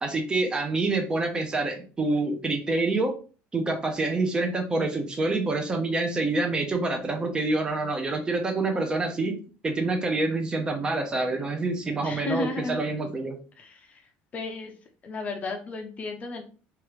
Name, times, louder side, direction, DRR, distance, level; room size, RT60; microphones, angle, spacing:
voice 1, 0.0-3.2 3.5-9.3 9.6-13.4, right 2 dB, 15° right, 4 dB, 0.6 m, -27 dB
voice 2, 12.0-12.8 13.6-14.0 14.3-14.7 15.0-16.4, left 3 dB, 30° left, 4 dB, 0.5 m, -33 dB
2.9 x 2.4 x 3.0 m, 0.37 s
cardioid pair, 140°, 5 cm